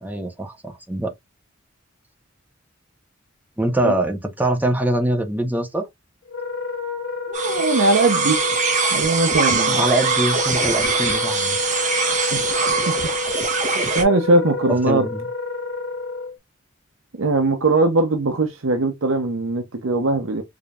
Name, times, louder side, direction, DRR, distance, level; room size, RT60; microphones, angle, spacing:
voice 1, 0.0-1.1 3.6-5.9 9.7-11.7 14.7-15.3, right 1 dB, 10° right, 0.8 m, -23 dB
Wind instrument woodwind instrument, 6.3-16.4, left 3 dB, 75° left, 0.7 m, -28 dB
sound 1, 7.3-14.0, right 5 dB, 40° right, 1.3 m, -22 dB
voice 2, 7.3-8.4 8.9-9.8 12.3-12.5 12.9-13.0 13.9-15.0 17.2-20.4, right 2 dB, 80° right, 0.8 m, -20 dB
5.0 x 2.7 x 2.4 m
head